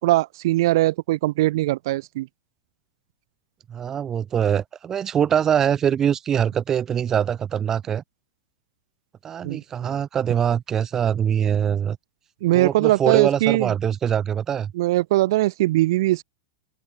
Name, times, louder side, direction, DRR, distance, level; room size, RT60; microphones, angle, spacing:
voice 1, 0.0-2.3 9.4-9.6 12.4-13.7 14.7-16.2, right 17 dB, 55° right, 3.7 m, -20 dB
voice 2, 3.7-8.0 9.2-12.0 12.5-14.7, right 8 dB, 20° right, 3.9 m, -23 dB
open air
supercardioid pair, 165°, 3 cm